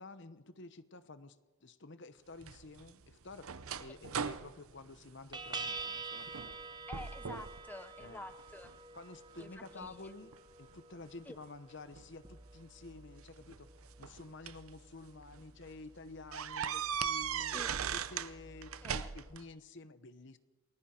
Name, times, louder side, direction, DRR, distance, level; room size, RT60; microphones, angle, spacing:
voice 1, 0.0-1.4 1.6-6.6 8.0-8.2 8.9-10.3 10.6-13.7 14.0-17.6 17.9-20.4, left 3 dB, 55° left, 12 dB, 1.0 m, -51 dB
sound 1, 2.4-5.9 6.3-6.6 6.9-7.6 8.0-8.8 9.4-10.8 12.0-12.1 13.3-14.7 15.2-15.4 15.7-15.8 16.3-18.3 18.6-19.4, right 7 dB, 75° right, 0.7 m, -39 dB
sound 2, 4.5-4.7 5.3-19.4, right 3 dB, 20° right, 1.0 m, -49 dB
voice 2, 6.9-8.7 9.4-10.1 11.3-11.4 17.5-17.7 18.8-19.1, left 1 dB, 10° left, 10 dB, 0.6 m, -48 dB
29.0 x 20.0 x 4.5 m, 1.2 s
head